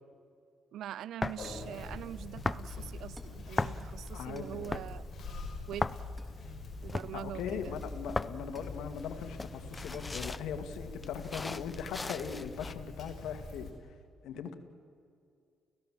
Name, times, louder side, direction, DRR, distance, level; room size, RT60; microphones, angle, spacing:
voice 1, 0.7-5.1 5.7-5.9 6.8-7.8, right 11 dB, 75° right, 20 dB, 0.5 m, -43 dB
sound 1, 1.2-12.7, left 3 dB, 20° left, 0.7 m, -39 dB
Conversation, 1.4-13.7, left 3 dB, 50° left, 5.3 m, -44 dB
sound 2, 1.4-1.8 3.2-3.5 4.4-4.6 6.2-6.8 7.8-8.9 9.9-10.2, equal, 5° right, 3.6 m, -57 dB
voice 2, 4.1-4.8 7.1-13.7 14.2-14.5, left 7 dB, 80° left, 7 dB, 2.2 m, -40 dB
30.0 x 16.5 x 7.6 m, 2.4 s
cardioid pair, 90°, 0 cm